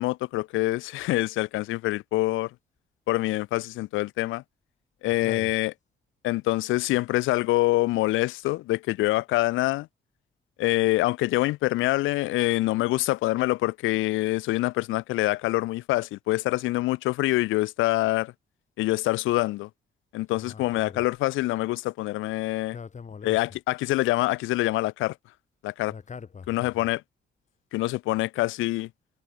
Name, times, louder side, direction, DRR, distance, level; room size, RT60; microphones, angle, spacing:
voice 1, 0.0-2.5 3.1-4.4 5.0-5.7 6.2-9.9 10.6-18.3 18.8-19.7 20.1-22.8 23.2-25.1 25.6-25.9 26.5-27.0 27.7-28.9, left 18 dB, 85° left, 0.4 m, -25 dB
voice 2, 5.0-5.5 20.3-21.0 22.7-23.4 25.9-26.9, left 6 dB, 35° left, 2.1 m, -42 dB
cardioid pair, 90°, 20 cm